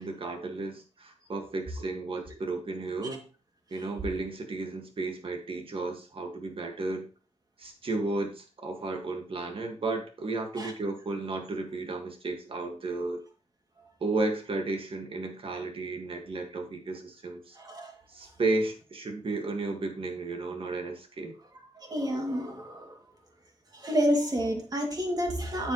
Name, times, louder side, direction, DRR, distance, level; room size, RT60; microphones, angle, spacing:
voice 1, 0.0-3.3 3.7-7.1 7.6-13.2 14.0-17.6 18.1-21.3, right 3 dB, 50° right, 1.9 m, -33 dB
voice 2, 17.6-17.9 21.8-22.9 23.7-25.7, equal, 35° right, 2.5 m, -29 dB
8.8 x 7.6 x 3.1 m
wide cardioid pair, 105°, 12 cm